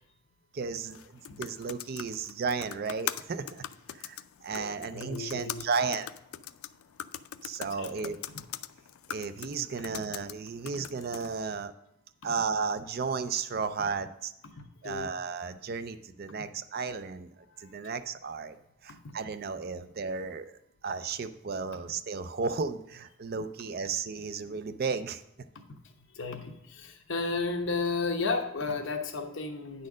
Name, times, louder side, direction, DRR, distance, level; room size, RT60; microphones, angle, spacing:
voice 1, 0.5-1.0 1.4-3.6 3.9-6.1 7.4-8.2 9.1-11.7 12.2-14.3 14.8-17.3 17.6-18.6 18.8-20.5 20.8-25.2, right 5 dB, 45° right, 11 dB, 0.4 m, -34 dB
sound 1, 0.8-11.4, left 11 dB, 90° left, 0.4 m, -42 dB
voice 2, 4.5-5.6 7.8-7.9 14.6-15.1 16.4-16.5 17.6-17.7 19.0-19.1 26.1-29.9, left 4 dB, 60° left, 5 dB, 0.9 m, -33 dB
9.4 x 4.3 x 6.2 m, 0.81 s
head